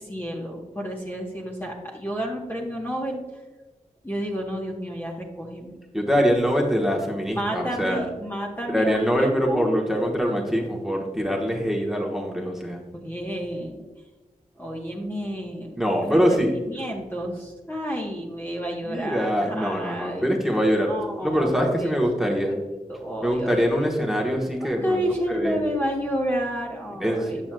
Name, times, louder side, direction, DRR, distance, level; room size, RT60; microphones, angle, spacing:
voice 1, 0.0-3.2 4.0-5.7 7.3-9.7 12.9-13.8 14.6-15.7 16.1-20.3 20.9-21.9 22.2-22.6 22.9-23.8 24.6-27.3 27.4-27.5, equal, 15° left, -1 dB, 1.1 m, -30 dB
voice 2, 5.9-8.1 8.7-12.8 15.8-16.5 18.9-20.9 21.2-22.6 23.2-25.0 25.3-25.6 27.0-27.5, equal, 5° right, -1 dB, 1.2 m, -23 dB
7.4 x 5.9 x 2.3 m, 1.2 s
cardioid pair, 50°, 14 cm